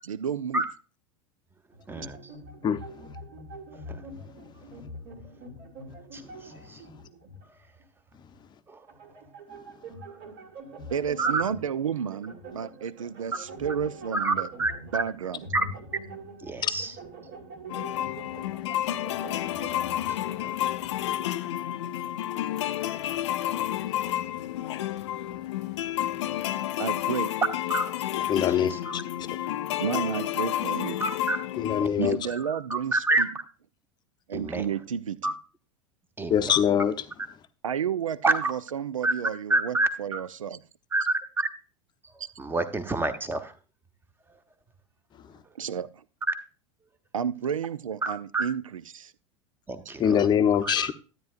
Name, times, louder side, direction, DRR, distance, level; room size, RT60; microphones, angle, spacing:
voice 1, 0.1-0.6 10.9-14.5 14.8-15.5 26.8-27.4 29.8-31.0 32.0-33.3 34.3-35.3 37.6-40.6 42.2-42.3 45.5-46.0 47.1-49.1, right 8 dB, 75° right, 0.5 m, -31 dB
sound 1, 1.7-7.5 7.8-7.9 8.9-21.2, right 1 dB, 50° right, 2.5 m, -44 dB
voice 2, 14.1-14.7 15.5-15.6 16.5-16.9 27.7-27.8 28.5-29.0 31.0-31.4 31.8-31.9 32.3-33.3 34.3-34.7 35.2-35.3 36.2-36.5 38.2-38.5 39.0-39.1 39.5-40.2 40.9-41.0 41.4-41.5 42.4-43.5 46.3-46.4 48.0-48.4 49.7-50.3 50.6-50.9, right 2 dB, 15° right, 1.1 m, -28 dB
sound 2, 17.7-31.9, left 12 dB, 60° left, 0.5 m, -30 dB
voice 3, 28.3-29.0 31.6-32.2 36.3-36.9 50.0-50.9, left 8 dB, 25° left, 0.7 m, -23 dB
12.5 x 9.2 x 2.5 m
figure-of-eight pair, 85°, 17 cm